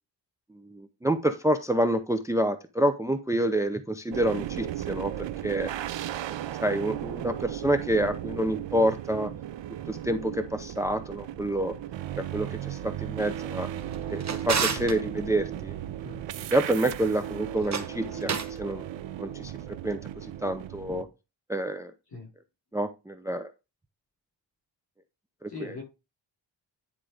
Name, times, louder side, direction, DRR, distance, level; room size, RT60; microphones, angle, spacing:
voice 1, 0.7-5.7 6.3-9.3 9.9-11.7 12.2-13.7 14.1-15.8 16.5-18.9 19.2-19.5 19.8-21.1 21.5-21.9 22.7-23.5 25.4-25.7, right 1 dB, 5° right, 9 dB, 0.6 m, -28 dB
sound 1, 4.1-21.0, right 11 dB, 75° right, 0.7 m, -36 dB
Drawer open or close, 13.8-15.0 17.5-18.6, right 6 dB, 40° right, 1.2 m, -31 dB
voice 2, 16.0-16.4 22.1-22.3 25.5-25.8, left 2 dB, 55° left, 2 dB, 5.1 m, -41 dB
10.0 x 3.7 x 5.0 m, 0.26 s
cardioid pair, 110°, 44 cm